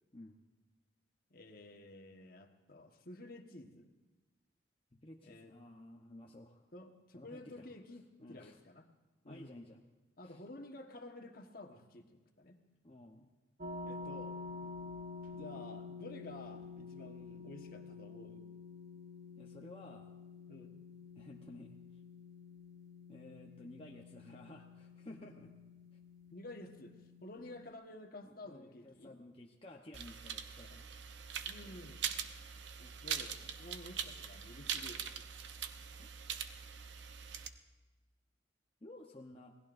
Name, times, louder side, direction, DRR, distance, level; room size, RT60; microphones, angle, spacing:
voice 1, 1.3-3.9 5.2-5.5 6.7-8.9 9.2-9.5 10.2-12.6 13.8-14.3 15.3-18.5 20.5-20.8 26.3-29.1 31.4-32.1 32.8-35.2, left 2 dB, 50° left, 3 dB, 1.4 m, -52 dB
voice 2, 4.9-6.6 7.1-7.7 8.2-8.6 9.3-9.9 10.2-10.4 12.8-13.3 19.3-20.2 21.1-22.0 23.1-25.5 25.9-26.0 28.3-31.0 31.6-31.8 35.8-36.1 38.8-39.6, left 1 dB, 30° left, -1 dB, 0.9 m, -54 dB
sound 1, 13.6-27.7, left 4 dB, 50° right, 1.3 m, -49 dB
sound 2, 29.9-37.5, right 8 dB, 70° right, 0.8 m, -42 dB
27.5 x 19.0 x 2.6 m, 1.2 s
head